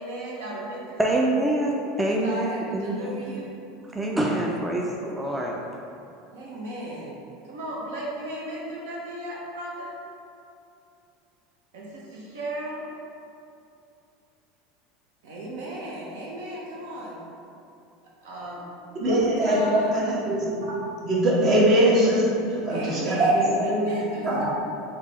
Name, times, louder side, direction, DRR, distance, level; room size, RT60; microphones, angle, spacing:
voice 1, 0.0-1.2 2.0-3.5 6.3-7.2 7.4-9.9 11.7-12.9 15.2-17.2 18.2-18.6 19.0-19.9 22.7-24.5, right 1 dB, 75° right, -4 dB, 0.7 m, -35 dB
voice 2, 1.0-3.1 3.9-5.5, right 1 dB, 10° right, -1 dB, 0.4 m, -25 dB
voice 3, 19.0-20.7 21.0-23.9 24.2-24.5, right 1 dB, 50° right, -6 dB, 1.2 m, -22 dB
3.3 x 2.9 x 3.3 m, 2.7 s
hypercardioid pair, 90°, 0 cm